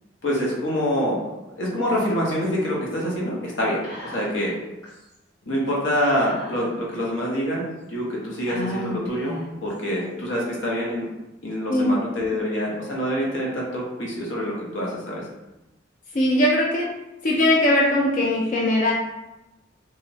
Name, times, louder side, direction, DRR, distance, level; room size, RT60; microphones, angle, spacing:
voice 1, 0.2-1.2 1.6-4.6 5.4-11.1 11.4-15.3, equal, 85° left, -3 dB, 0.8 m, -26 dB
Whispering, 3.8-4.5 4.8-4.9 6.1-6.9 7.6-7.7 8.5-9.7, left 1 dB, 25° left, 1.2 m, -34 dB
voice 2, 16.1-16.9 17.2-18.9, left 1 dB, 45° left, -3 dB, 0.4 m, -20 dB
2.7 x 2.0 x 2.7 m, 0.97 s
head